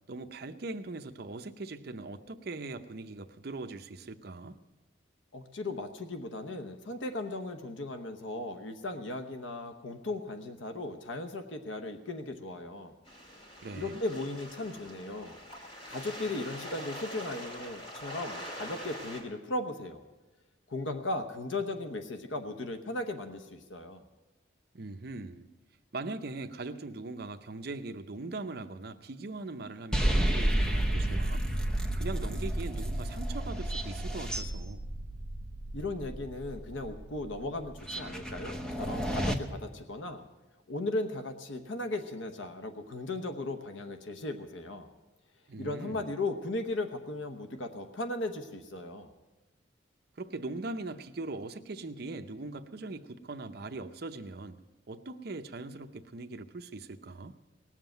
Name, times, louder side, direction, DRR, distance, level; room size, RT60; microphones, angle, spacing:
voice 1, 0.1-4.6 13.6-14.0 24.7-25.5 25.9-31.4 32.0-34.8 45.5-46.1 50.2-54.6 54.9-57.3, right 3 dB, 55° right, 0.6 m, -40 dB
voice 2, 5.3-12.9 13.8-15.4 15.9-20.0 20.7-24.0 35.7-40.2 40.7-44.9 45.6-49.1, left 2 dB, 85° left, 0.9 m, -37 dB
sound 1, 13.1-19.2, equal, 30° left, 2.8 m, -44 dB
sound 2, 29.9-39.3, right 1 dB, 5° left, 0.9 m, -31 dB
18.5 x 7.5 x 9.1 m
head